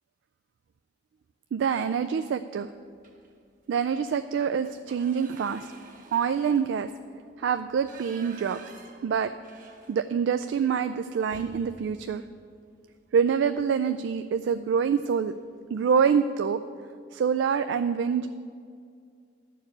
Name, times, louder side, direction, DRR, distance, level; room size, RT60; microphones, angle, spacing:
voice 1, 1.5-2.7 3.7-5.7 6.1-6.9 7.4-8.6 9.0-9.3 9.9-12.2 13.1-15.3 15.7-16.6 17.1-18.3, right 6 dB, 90° right, 9 dB, 0.3 m, -26 dB
sound 1, 3.0-3.4 3.8-4.0 4.3-10.4 10.7-10.8 11.2-13.3 14.7-14.9 15.3-15.5 15.8-16.4, right 3 dB, 45° right, 0.9 m, -51 dB
11.5 x 4.7 x 7.9 m, 2.2 s
head